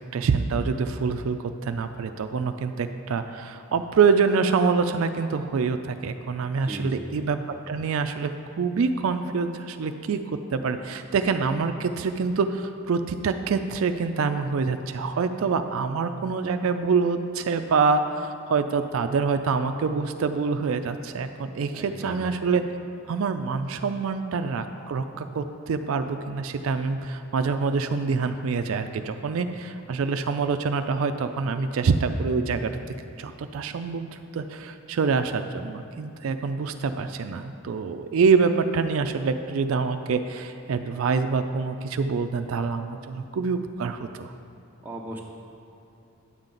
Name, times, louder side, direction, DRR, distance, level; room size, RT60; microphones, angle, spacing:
voice 1, 0.1-7.4 7.7-8.3 8.6-22.6 23.1-32.8 33.2-44.3, right 5 dB, 75° right, 8 dB, 0.4 m, -26 dB
voice 2, 6.6-7.1 21.7-22.2 44.8-45.2, right 1 dB, 10° right, -1 dB, 0.8 m, -37 dB
9.7 x 7.3 x 3.9 m, 2.8 s
head